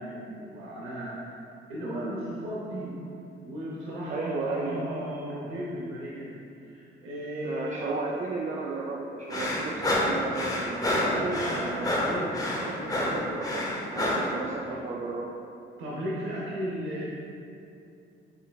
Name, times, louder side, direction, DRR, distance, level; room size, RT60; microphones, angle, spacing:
voice 1, 0.0-1.4 1.7-3.0 3.4-8.2 10.9-13.3 14.6-14.8 15.8-17.1, equal, 85° right, -6 dB, 0.7 m, -36 dB
voice 2, 4.1-4.8 7.4-11.9 12.5-15.3, right 3 dB, 40° right, -1 dB, 0.4 m, -34 dB
sound 1, 9.3-14.3, left 1 dB, 20° left, 0.7 m, -28 dB
5.4 x 3.2 x 2.3 m, 2.7 s
cardioid pair, 90°, 20 cm